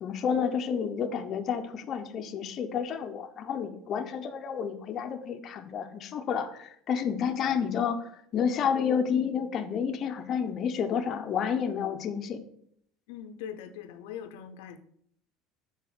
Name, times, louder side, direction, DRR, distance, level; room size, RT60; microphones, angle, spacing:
voice 1, 0.0-12.4, left 7 dB, 35° left, 6 dB, 0.6 m, -30 dB
voice 2, 13.1-14.8, left 9 dB, 85° left, 9 dB, 0.6 m, -41 dB
6.1 x 4.1 x 5.9 m, 0.69 s
cardioid pair, 150°, 0 cm